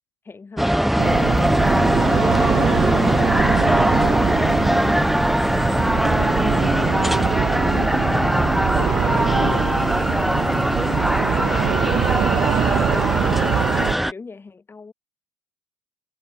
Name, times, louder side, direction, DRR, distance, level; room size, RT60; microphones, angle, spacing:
voice 1, 0.3-1.6 11.5-12.3 12.9-14.9, left 4 dB, 25° left, 1.8 m, -39 dB
sound 1, 0.6-14.1, equal, ahead, 0.4 m, -20 dB
sound 2, 1.0-13.9, right 12 dB, 55° right, 0.6 m, -24 dB
voice 2, 6.2-7.1 7.7-8.5 8.8-9.8 10.8-12.0 12.7-13.6, left 13 dB, 60° left, 0.9 m, -37 dB
hypercardioid pair, 70°, 9 cm